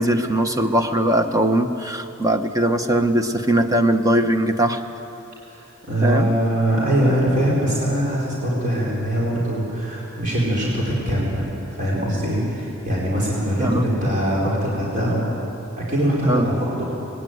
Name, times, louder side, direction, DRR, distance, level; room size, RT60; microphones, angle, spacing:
voice 1, 0.0-4.8 6.0-6.3 13.6-13.9 16.2-16.5, right 1 dB, 15° right, 6 dB, 0.9 m, -20 dB
voice 2, 5.5-15.3 15.8-16.9, right 1 dB, 40° right, -6 dB, 4.7 m, -22 dB
20.5 x 17.0 x 9.4 m, 3.0 s
head